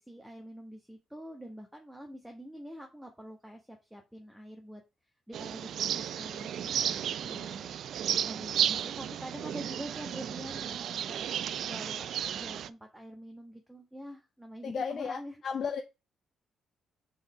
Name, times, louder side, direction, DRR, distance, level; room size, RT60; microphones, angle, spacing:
voice 1, 0.0-4.8 5.3-7.8 8.2-15.4, equal, 5° right, 1.3 m, -46 dB
sound 1, 5.3-12.7, right 9 dB, 70° right, 0.4 m, -33 dB
voice 2, 14.6-15.8, left 6 dB, 50° left, 0.8 m, -34 dB
5.2 x 4.1 x 4.9 m
cardioid pair, 90°, 0 cm